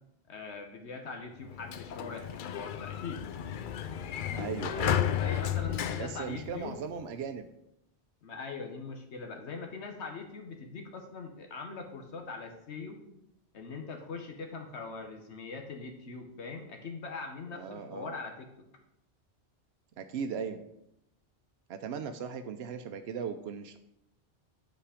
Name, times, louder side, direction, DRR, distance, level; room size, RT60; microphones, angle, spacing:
voice 1, 0.3-3.2 5.2-6.8 8.2-13.0 13.5-18.5, left 4 dB, 80° left, 3 dB, 1.2 m, -41 dB
Sliding door, 1.4-7.0, left 9 dB, 60° left, 0.6 m, -33 dB
voice 2, 4.3-5.0 6.0-7.5 17.5-18.1 20.0-20.6 21.7-23.8, right 6 dB, 70° right, 7 dB, 0.8 m, -38 dB
8.9 x 5.6 x 5.0 m, 0.82 s
omnidirectional pair, 1.1 m